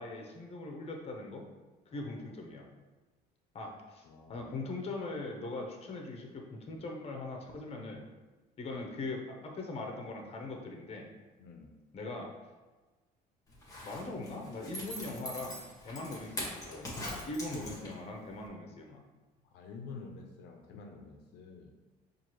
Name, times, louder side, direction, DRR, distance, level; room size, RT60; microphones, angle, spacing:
voice 1, 0.0-1.4 1.9-2.7 3.5-8.1 8.6-11.1 11.9-12.3 13.8-16.9 17.2-19.0, left 2 dB, 35° left, 1 dB, 0.7 m, -41 dB
voice 2, 4.0-4.5 11.4-11.7 19.4-21.7, left 4 dB, 80° left, 2 dB, 0.5 m, -49 dB
Zipper (clothing), 13.5-18.1 18.5-18.6, left 1 dB, 20° left, 1.1 m, -42 dB
4.5 x 2.5 x 2.9 m, 1.2 s
cardioid pair, 105°, 17 cm